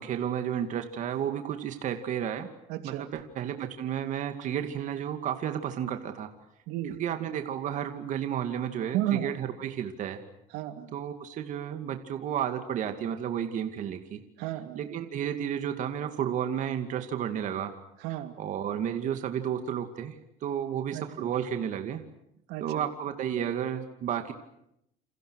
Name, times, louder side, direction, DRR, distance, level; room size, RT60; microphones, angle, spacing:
voice 1, 0.0-2.5 2.8-6.3 6.9-10.2 10.9-14.2 14.7-17.7 18.4-20.2 20.4-22.1 22.6-24.3, right 9 dB, 50° right, 7 dB, 2.4 m, -32 dB
voice 2, 2.7-3.1 6.7-7.0 8.9-9.3 10.5-10.9 14.4-14.8 18.0-18.3 20.9-21.3 22.5-22.9, right 13 dB, 80° right, 7 dB, 2.9 m, -33 dB
29.0 x 28.5 x 6.5 m, 0.79 s
cardioid pair, 135°, 17 cm